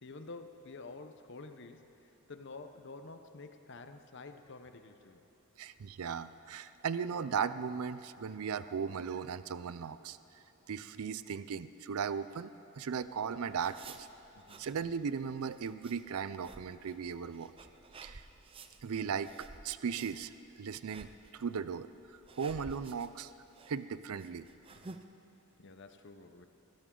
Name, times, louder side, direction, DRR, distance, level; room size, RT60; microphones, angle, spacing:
voice 1, 0.0-5.2 14.3-14.7 24.7-25.0 25.6-26.5, left 3 dB, 55° left, 8 dB, 0.8 m, -49 dB
voice 2, 5.6-10.2 10.7-12.5 12.8-14.1 14.6-17.5 18.0-18.3 18.8-23.3 23.7-24.5, right 6 dB, 80° right, 14 dB, 0.4 m, -37 dB
sound 1, 13.0-25.0, right 3 dB, 25° right, 0.5 m, -54 dB
21.0 x 15.5 x 3.8 m, 2.8 s
head